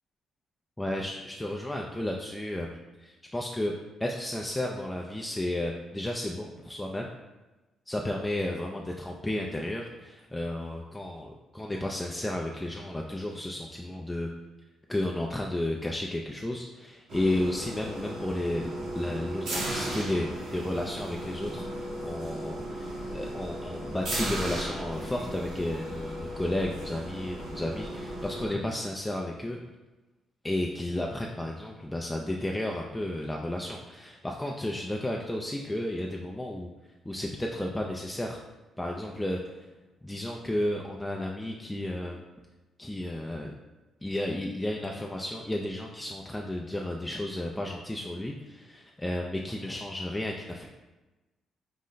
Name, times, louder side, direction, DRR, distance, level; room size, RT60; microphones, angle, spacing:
voice 1, 0.8-2.7 3.0-3.7 4.0-7.1 7.9-14.3 14.9-29.6 30.4-36.7 37.0-38.4 38.8-39.7 40.0-42.2 42.8-43.5 44.0-50.7, left 1 dB, 10° left, 0 dB, 0.4 m, -33 dB
sound 1, 17.1-28.5, right 1 dB, 70° right, 1.1 m, -36 dB
5.0 x 2.1 x 3.8 m, 1.1 s
cardioid pair, 90°, 0 cm